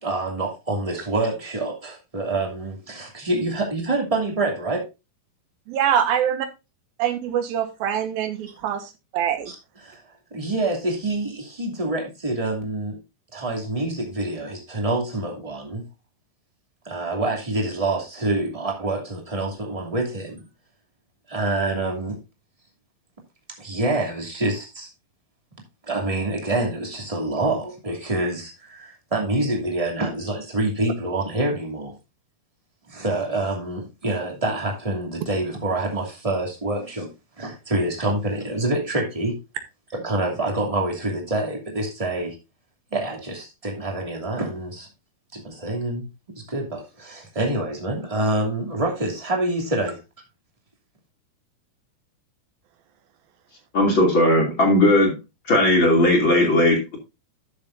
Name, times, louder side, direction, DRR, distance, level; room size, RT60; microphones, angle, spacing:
voice 1, 0.0-4.8 9.5-9.6 9.8-10.0 10.3-13.0 13.3-15.8 16.8-20.5 21.3-22.2 23.6-24.9 25.8-31.9 32.9-37.1 37.4-39.4 39.9-42.4 42.9-44.9 45.3-46.1 46.3-50.0, right 2 dB, 10° right, 2.0 m, -26 dB
voice 2, 5.7-6.5 7.0-9.5, right 9 dB, 85° right, 3.0 m, -24 dB
voice 3, 53.7-55.2 55.5-57.0, left 1 dB, 35° left, 3.1 m, -17 dB
13.0 x 6.9 x 2.6 m
omnidirectional pair, 4.2 m